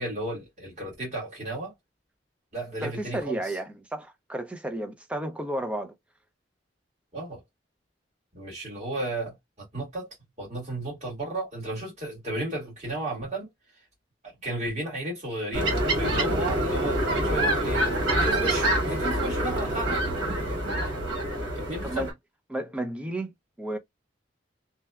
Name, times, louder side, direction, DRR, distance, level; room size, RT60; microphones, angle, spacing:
voice 1, 0.0-1.7 2.5-3.4 7.1-7.4 8.3-9.3 9.7-10.1 10.4-13.5 14.4-20.0 21.5-22.0, right 1 dB, 40° right, 1.7 m, -33 dB
voice 2, 2.8-5.9 20.2-20.5 21.8-22.1 22.5-23.8, right 1 dB, 5° right, 0.4 m, -33 dB
sound 1, 15.5-22.1, right 1 dB, 85° right, 1.2 m, -26 dB
2.7 x 2.2 x 2.2 m
head